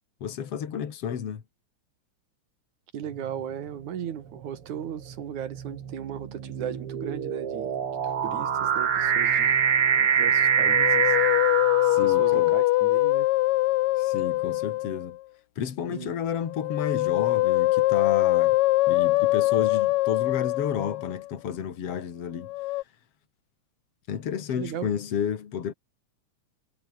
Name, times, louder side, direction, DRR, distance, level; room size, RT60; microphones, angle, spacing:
voice 1, 0.2-1.4 11.8-12.5 14.0-15.2 15.6-18.6 18.9-22.5 24.1-25.7, left 8 dB, 55° left, 3.1 m, -31 dB
voice 2, 2.9-7.7 8.0-9.6 10.0-11.2 12.0-13.3 15.9-16.1 24.6-24.9, right 9 dB, 85° right, 3.4 m, -37 dB
sound 1, 3.1-3.5 4.4-12.6, right 7 dB, 50° right, 2.8 m, -25 dB
Musical instrument, 10.5-15.2 16.4-21.3 22.4-22.8, left 18 dB, 80° left, 1.9 m, -23 dB
omnidirectional pair, 3.3 m